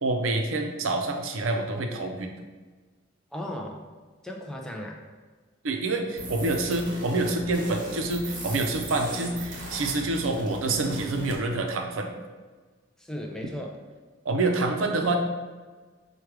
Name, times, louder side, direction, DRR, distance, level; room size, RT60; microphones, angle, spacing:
voice 1, 0.0-2.3 5.6-12.1 14.2-15.2, right 2 dB, 80° right, 4 dB, 0.5 m, -27 dB
voice 2, 3.3-3.8 4.2-5.0 13.0-13.7, left 1 dB, 5° left, 0 dB, 0.3 m, -36 dB
sound 1, 6.2-11.4, right 1 dB, 40° right, 0.8 m, -37 dB
4.6 x 2.3 x 4.7 m, 1.4 s
head